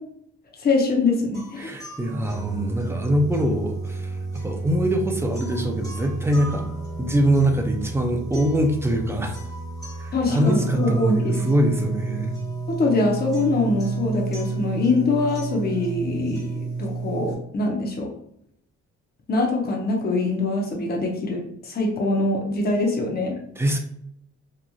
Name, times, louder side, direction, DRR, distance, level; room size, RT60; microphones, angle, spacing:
voice 1, 0.6-1.7 10.1-11.5 12.7-18.1 19.3-23.4, left 2 dB, 30° left, 0 dB, 0.8 m, -23 dB
sound 1, 1.3-17.3, right 3 dB, 10° left, 1.2 m, -31 dB
voice 2, 1.6-6.7 7.0-9.3 10.0-12.3 23.6-23.8, right 1 dB, 10° right, 2 dB, 0.5 m, -23 dB
3.0 x 2.4 x 2.3 m, 0.75 s
cardioid pair, 90°, 30 cm